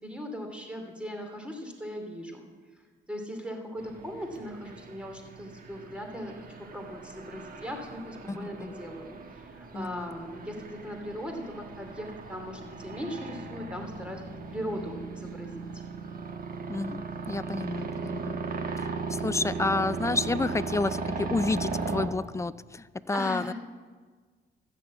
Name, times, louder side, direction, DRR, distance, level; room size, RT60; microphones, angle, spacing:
voice 1, 0.0-2.5 3.1-14.2 14.5-15.7 23.1-23.5, equal, 5° right, 3 dB, 2.5 m, -39 dB
sound 1, 3.8-22.1, right 4 dB, 45° right, 1.3 m, -37 dB
voice 2, 8.3-8.7 9.7-10.1 16.7-18.4 19.2-23.5, left 3 dB, 15° left, 16 dB, 0.4 m, -30 dB
13.0 x 6.9 x 8.2 m, 1.5 s
cardioid pair, 90°, 20 cm